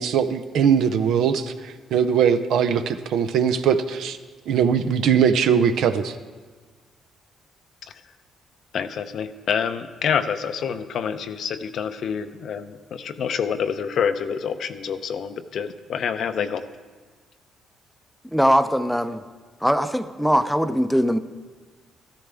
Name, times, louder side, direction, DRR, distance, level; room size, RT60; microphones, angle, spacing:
voice 1, 0.0-4.2 4.5-6.2, right 7 dB, 80° right, 9 dB, 0.6 m, -21 dB
voice 2, 8.7-16.6, left 7 dB, 65° left, 9 dB, 0.6 m, -27 dB
voice 3, 18.2-19.3 19.6-21.2, equal, ahead, 11 dB, 0.6 m, -21 dB
14.0 x 13.0 x 3.4 m, 1.4 s
cardioid pair, 90°, 0 cm